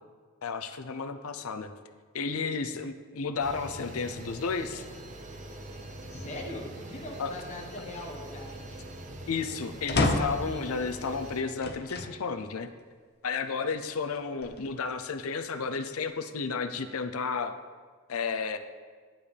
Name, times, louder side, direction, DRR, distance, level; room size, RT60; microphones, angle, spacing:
voice 1, 0.4-1.7 2.1-4.8 7.2-7.3 9.3-12.7 13.2-17.6 18.1-18.6, left 5 dB, 85° left, 9 dB, 0.6 m, -32 dB
sound 1, 3.4-11.4, right 1 dB, 35° right, 0.8 m, -43 dB
voice 2, 6.1-8.8, left 1 dB, 35° left, 0 dB, 1.3 m, -41 dB
sound 2, 9.9-10.5 11.6-12.2 12.8-12.9 14.1-14.9, left 2 dB, 50° left, 0.8 m, -29 dB
10.5 x 9.5 x 3.4 m, 1.6 s
head